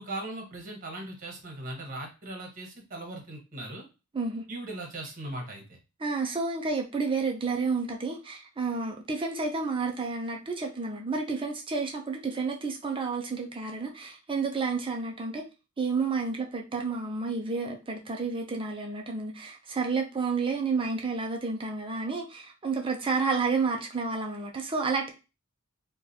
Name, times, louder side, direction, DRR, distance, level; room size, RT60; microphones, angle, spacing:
voice 1, 0.0-3.8 4.5-5.8, right 1 dB, 40° right, 1.2 m, -39 dB
voice 2, 4.1-4.5 6.0-15.5 15.8-25.1, right 4 dB, 25° right, 0.5 m, -30 dB
3.8 x 2.3 x 2.7 m
head